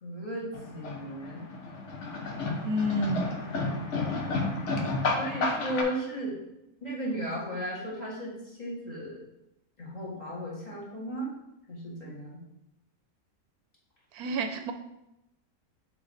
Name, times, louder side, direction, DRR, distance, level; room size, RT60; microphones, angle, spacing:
voice 1, 0.0-1.5 5.2-6.4 6.8-9.2 9.8-11.3 11.7-12.4, equal, 25° left, -5 dB, 2.0 m, -35 dB
sound 1, 0.5-5.8, left 3 dB, 55° left, 1.1 m, -31 dB
voice 2, 2.6-3.4 14.1-14.7, equal, 80° right, 8 dB, 1.1 m, -29 dB
7.0 x 4.1 x 4.0 m, 0.88 s
omnidirectional pair, 1.6 m